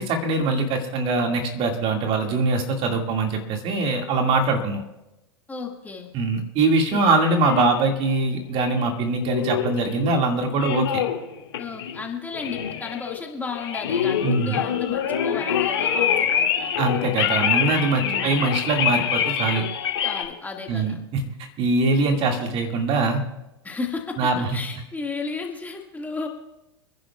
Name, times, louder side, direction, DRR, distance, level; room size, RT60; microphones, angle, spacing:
voice 1, 0.0-4.8 6.1-11.0 14.2-14.6 16.8-19.6 20.7-23.2 24.2-24.6, right 3 dB, 40° right, 3 dB, 2.1 m, -23 dB
voice 2, 5.5-6.1 11.6-16.7 18.0-18.4 20.0-21.0 23.6-24.2 24.5-26.3, left 4 dB, 10° left, 1 dB, 2.0 m, -34 dB
sound 1, 6.9-7.8 8.6-10.2 10.5-11.2 11.5-12.1 12.3-13.2 13.5-20.2, left 8 dB, 75° left, 2.2 m, -25 dB
29.0 x 10.5 x 2.4 m, 0.92 s
hypercardioid pair, 95°, 14 cm